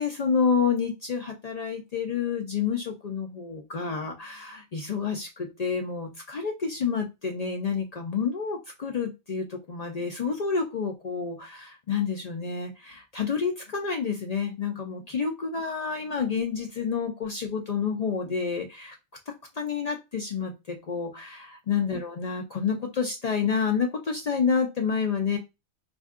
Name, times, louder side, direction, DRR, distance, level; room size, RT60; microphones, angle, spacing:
voice 1, 0.0-19.0 19.5-25.4, left 6 dB, 55° left, 2 dB, 0.4 m, -29 dB
4.3 x 2.5 x 2.4 m, 0.24 s
omnidirectional pair, 1.2 m